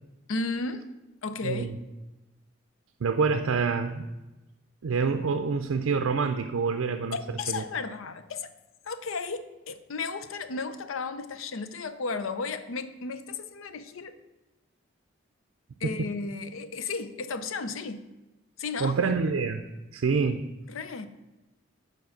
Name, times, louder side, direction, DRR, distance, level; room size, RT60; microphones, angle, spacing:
voice 1, 0.3-0.9 1.2-1.7 7.1-8.5 8.8-14.2 15.8-18.1 18.6-18.9 20.7-21.1, left 4 dB, 80° left, 12 dB, 0.6 m, -34 dB
voice 2, 1.4-1.8 3.0-4.1 4.8-7.2 7.5-7.6 15.8-16.1 18.8-19.6 19.9-20.5, right 5 dB, 85° right, 7 dB, 0.4 m, -27 dB
7.1 x 4.7 x 6.3 m, 1.0 s
head